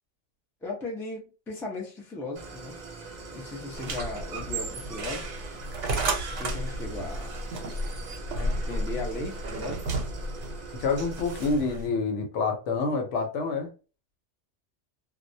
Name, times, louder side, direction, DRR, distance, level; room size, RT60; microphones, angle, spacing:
voice 1, 0.6-2.8 3.3-5.3 6.3-7.4 8.3-10.1, left 2 dB, 5° left, 0.3 m, -37 dB
Idling, 2.4-11.5, right 3 dB, 50° right, 0.6 m, -43 dB
sound 1, 3.7-11.9, right 2 dB, 80° right, 1.0 m, -33 dB
voice 2, 10.7-13.7, left 4 dB, 80° left, 1.0 m, -27 dB
2.3 x 2.1 x 2.6 m
omnidirectional pair, 1.2 m